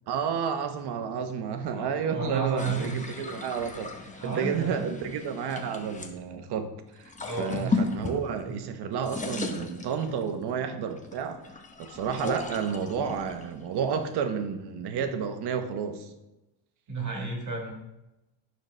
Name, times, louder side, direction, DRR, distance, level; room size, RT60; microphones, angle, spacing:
voice 1, 0.1-3.9 4.2-6.7 7.0-11.4 11.8-16.1, right 7 dB, 55° right, 8 dB, 1.0 m, -31 dB
voice 2, 1.7-3.2 4.2-4.8 7.2-7.8 8.5-8.6 16.9-17.7, right 4 dB, 40° right, 0 dB, 1.6 m, -32 dB
sound 1, 2.6-6.1 7.0-8.7 8.9-10.4 11.0-14.4, left 3 dB, 15° left, 0.8 m, -36 dB
9.2 x 6.7 x 3.3 m, 0.96 s
cardioid pair, 140°, 47 cm